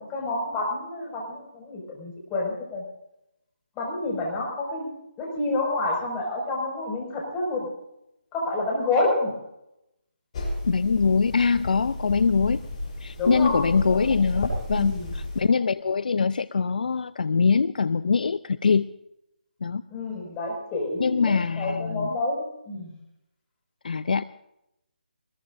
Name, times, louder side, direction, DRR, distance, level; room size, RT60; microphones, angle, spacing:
voice 1, 0.0-2.8 3.8-4.9 5.2-7.7 8.3-9.4 13.2-13.6 13.9-14.0 14.7-15.1 19.9-21.2 21.6-22.9, left 2 dB, 15° left, -1 dB, 5.7 m, -28 dB
sound 1, 10.3-15.4, left 1 dB, 40° left, 7.4 m, -32 dB
voice 2, 10.7-12.6 13.0-18.9 19.6-19.8 21.0-22.2 23.8-24.2, left 5 dB, 60° left, 15 dB, 0.5 m, -23 dB
23.5 x 21.0 x 2.6 m, 0.84 s
figure-of-eight pair, 155°, 5 cm